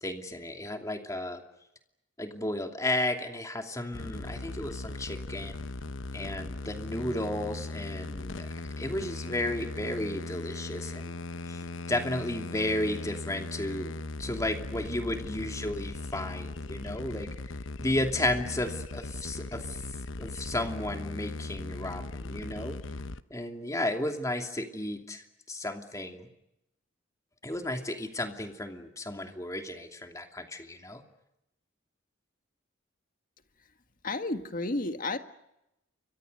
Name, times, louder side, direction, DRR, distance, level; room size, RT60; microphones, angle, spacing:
voice 1, 0.0-1.4 2.2-5.6 6.1-8.5 8.8-11.1 11.5-17.3 17.8-19.8 20.2-22.8 23.3-26.3 27.4-31.0, left 1 dB, 15° left, 4 dB, 2.7 m, -33 dB
sound 1, 3.9-23.2, left 2 dB, 75° left, 1.0 m, -38 dB
voice 2, 34.0-35.2, left 2 dB, 45° left, 8 dB, 1.8 m, -31 dB
29.0 x 24.5 x 6.7 m, 0.86 s
head